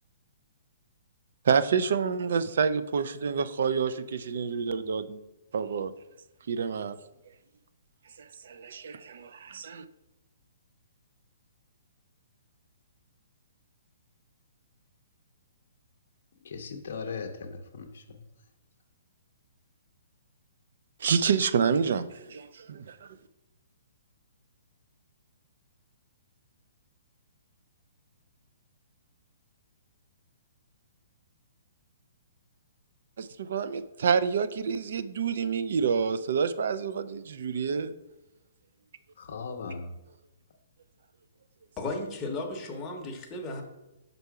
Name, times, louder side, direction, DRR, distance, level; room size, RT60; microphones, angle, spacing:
voice 1, 1.4-5.2 5.5-5.9 6.5-7.0 8.2-9.9 21.0-23.1 33.2-37.9, right 6 dB, 65° right, 12 dB, 0.4 m, -28 dB
voice 2, 16.4-18.3 39.2-40.0, left 4 dB, 60° left, 2 dB, 0.6 m, -38 dB
voice 3, 41.8-43.6, left 2 dB, 15° left, 0 dB, 0.8 m, -35 dB
5.5 x 4.0 x 4.7 m, 0.98 s
hypercardioid pair, 160°, 0 cm